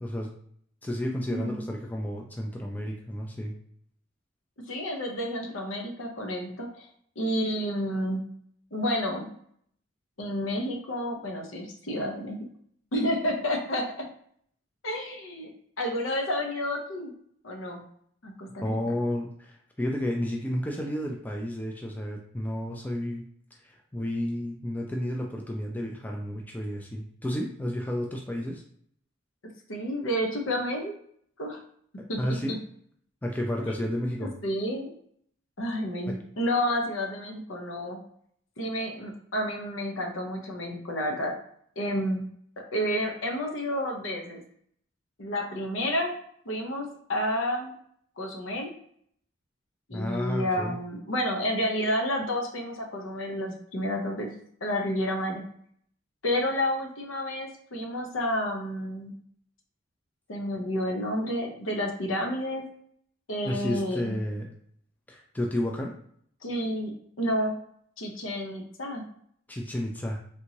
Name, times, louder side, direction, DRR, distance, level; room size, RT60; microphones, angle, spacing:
voice 1, 0.0-0.3 0.8-3.6 18.6-23.2 23.6-28.6 32.2-32.6 33.2-34.3 36.1-36.2 49.9-50.8 63.4-64.5 65.1-65.9 69.5-70.2, equal, 10° left, 0 dB, 0.3 m, -31 dB
voice 2, 1.3-1.7 4.7-6.9 7.2-8.2 8.7-9.3 10.2-12.5 12.9-14.1 14.8-15.5 15.8-17.1 17.4-17.8 18.2-19.0 29.7-30.9 31.4-31.6 32.1-32.6 33.6-33.7 34.2-34.9 35.6-38.0 38.6-41.3 41.8-42.2 42.7-44.4 45.2-46.1 46.4-47.7 48.2-48.7 49.9-54.3 54.6-55.4 56.2-59.2 60.3-62.6 63.3-64.2 66.4-67.5 68.0-69.0, equal, 80° left, 2 dB, 0.8 m, -30 dB
3.5 x 2.7 x 2.9 m, 0.64 s
head